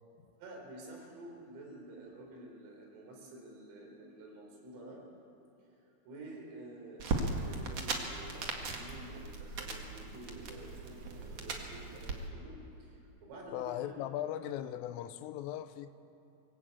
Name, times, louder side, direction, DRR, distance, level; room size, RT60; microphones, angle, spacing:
voice 1, 0.4-5.0 6.0-14.0, right 2 dB, 90° right, -1 dB, 6.9 m, -50 dB
sound 1, 7.0-12.1, right 3 dB, 55° right, 1.8 m, -38 dB
voice 2, 13.5-15.9, left 12 dB, 90° left, 11 dB, 3.4 m, -38 dB
23.0 x 19.0 x 8.5 m, 2.9 s
omnidirectional pair, 5.8 m